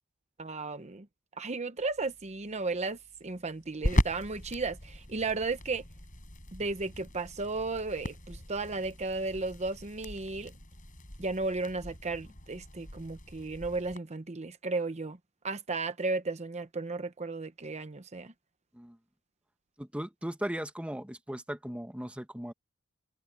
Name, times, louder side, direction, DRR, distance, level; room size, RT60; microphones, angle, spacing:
voice 1, 0.4-1.1 1.4-5.8 6.5-10.5 11.2-15.2 15.4-18.3, right 3 dB, 30° right, 0.8 m, -34 dB
sound 1, 1.8-14.0, equal, 40° left, 7.4 m, -38 dB
voice 2, 19.8-22.5, equal, 5° right, 1.2 m, -37 dB
head